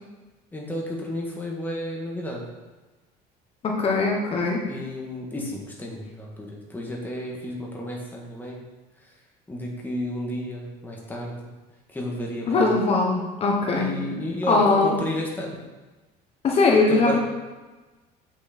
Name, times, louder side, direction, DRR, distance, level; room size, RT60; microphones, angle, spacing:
voice 1, 0.5-2.4 4.7-8.6 9.5-11.3 11.9-12.8 13.7-15.6 16.9-17.2, left 1 dB, 10° left, -2 dB, 1.7 m, -32 dB
voice 2, 3.6-4.6 12.5-13.9 14.5-14.9 16.4-17.2, left 3 dB, 35° left, -1 dB, 1.2 m, -20 dB
8.0 x 6.2 x 4.4 m, 1.2 s
cardioid pair, 155°, 18 cm